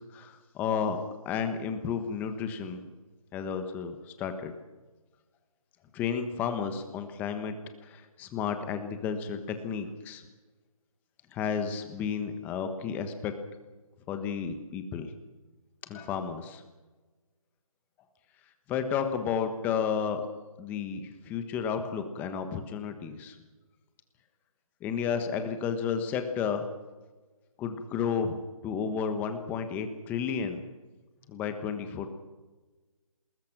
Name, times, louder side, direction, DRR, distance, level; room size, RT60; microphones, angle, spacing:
voice 1, 0.1-1.0 1.2-2.8 3.3-4.5 5.9-7.6 7.8-10.2 11.3-13.3 14.1-15.1 15.9-16.6 18.7-20.2 20.6-23.3 24.8-26.7 27.6-28.4 28.6-30.6 31.3-32.1, left 7 dB, 10° left, 8 dB, 1.2 m, -32 dB
28.5 x 20.5 x 6.0 m, 1.3 s
hypercardioid pair, 160°, 18 cm